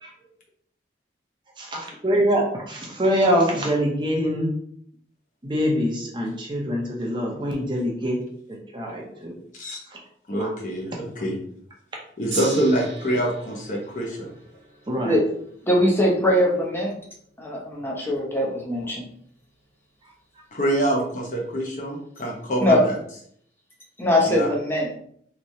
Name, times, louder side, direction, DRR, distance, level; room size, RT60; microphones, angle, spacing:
voice 1, 1.6-4.5 5.4-8.2 8.7-9.4 10.4-10.5 14.9-15.2, equal, 25° right, -1 dB, 0.7 m, -24 dB
voice 2, 10.3-11.4 12.2-14.3 20.5-23.0 24.2-24.5, right 1 dB, 45° left, -1 dB, 0.8 m, -25 dB
Gong, 12.3-18.7 19.4-19.5, right 4 dB, 80° right, 1.1 m, -40 dB
voice 3, 15.6-16.9 17.4-19.1 22.6-22.8 24.0-24.9, left 1 dB, 15° left, -2 dB, 0.7 m, -21 dB
3.3 x 3.1 x 2.7 m, 0.64 s
head